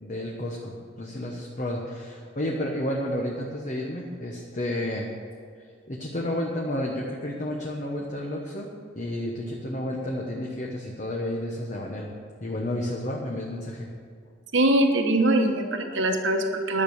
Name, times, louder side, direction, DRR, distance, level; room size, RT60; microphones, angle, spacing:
voice 1, 0.0-5.1 5.9-8.7 8.9-12.1 12.4-13.9, left 1 dB, 40° left, -1 dB, 1.1 m, -31 dB
voice 2, 14.5-16.8, right 1 dB, 65° right, 4 dB, 1.2 m, -22 dB
11.0 x 6.6 x 8.8 m, 2.1 s
head